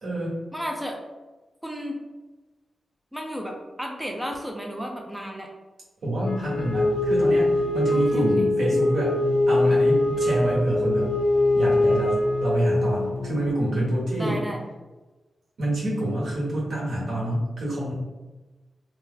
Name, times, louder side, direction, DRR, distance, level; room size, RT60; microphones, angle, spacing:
voice 1, 0.0-0.4 6.0-9.1 9.5-11.1 11.5-14.4 15.6-17.9, right 1 dB, 75° right, -6 dB, 1.2 m, -26 dB
voice 2, 0.5-1.0 1.6-2.0 3.1-5.5 7.9-8.5 14.2-14.6, equal, 5° right, 1 dB, 0.4 m, -33 dB
Wind instrument woodwind instrument, 6.2-13.0, left 2 dB, 50° left, 0.7 m, -23 dB
sound 1, 6.4-13.5, left 2 dB, 20° right, 0.9 m, -36 dB
2.8 x 2.1 x 3.7 m, 1.2 s
cardioid pair, 85°, 0 cm